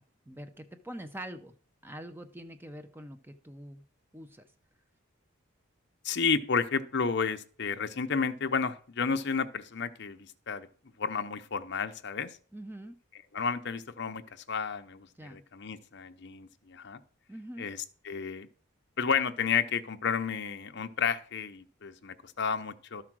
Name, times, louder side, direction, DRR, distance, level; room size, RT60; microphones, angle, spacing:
voice 1, 0.0-1.5 1.8-3.8 4.1-4.5 12.5-13.0 15.2-15.4 17.3-17.7, right 1 dB, 10° right, 8 dB, 0.7 m, -44 dB
voice 2, 6.0-10.7 11.0-12.4 13.3-14.2 14.5-17.0 17.6-17.8 18.0-18.5 19.0-23.0, left 5 dB, 55° left, 8 dB, 0.7 m, -31 dB
12.0 x 4.9 x 6.1 m, 0.43 s
head